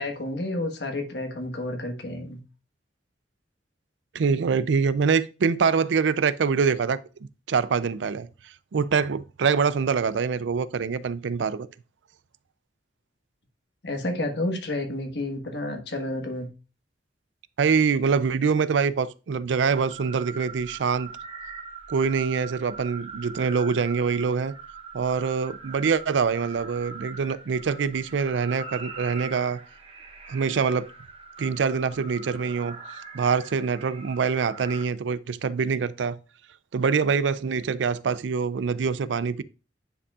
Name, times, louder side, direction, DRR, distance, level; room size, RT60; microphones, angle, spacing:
voice 1, 0.0-2.4 13.8-16.5, left 1 dB, 65° left, 1.4 m, -30 dB
voice 2, 4.1-7.0 7.5-8.3 8.7-11.7 17.6-21.1 21.9-24.6 24.9-29.6 30.3-30.9 31.4-32.8 33.1-36.2 36.7-39.4, right 5 dB, 85° right, 0.4 m, -24 dB
sound 1, 19.7-34.8, right 4 dB, 35° right, 1.2 m, -42 dB
9.8 x 5.4 x 2.4 m
head